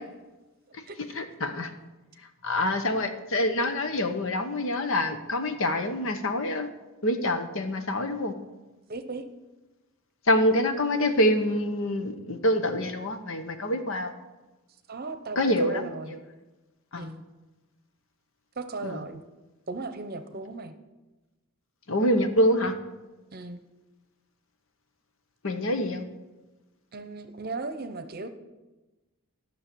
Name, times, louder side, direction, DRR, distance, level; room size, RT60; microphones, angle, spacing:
voice 1, 1.1-1.7 2.4-6.7 7.0-8.3 10.3-14.1 15.4-15.9 16.9-17.1 18.8-19.0 21.9-22.7 25.4-26.0, left 1 dB, 65° left, 8 dB, 1.0 m, -26 dB
voice 2, 8.9-9.2 14.9-16.2 17.0-17.2 18.6-19.2 19.7-20.7 23.3-23.6 26.9-28.3, right 3 dB, 45° right, 9 dB, 0.8 m, -36 dB
12.0 x 6.4 x 6.9 m, 1.1 s
head